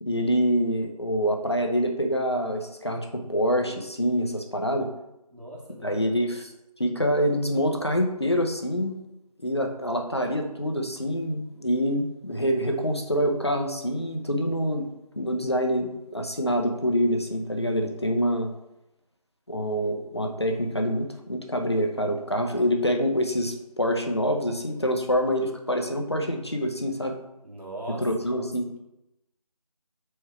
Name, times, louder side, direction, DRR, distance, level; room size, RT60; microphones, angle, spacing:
voice 1, 0.0-4.9 5.8-6.5 6.8-9.0 9.4-14.9 15.2-18.5 19.5-27.2 28.0-28.7, equal, 45° left, 3 dB, 0.7 m, -26 dB
voice 2, 5.3-6.0 27.4-28.1, right 1 dB, 80° right, -3 dB, 2.3 m, -39 dB
4.8 x 4.5 x 4.3 m, 0.89 s
figure-of-eight pair, 170°, 20 cm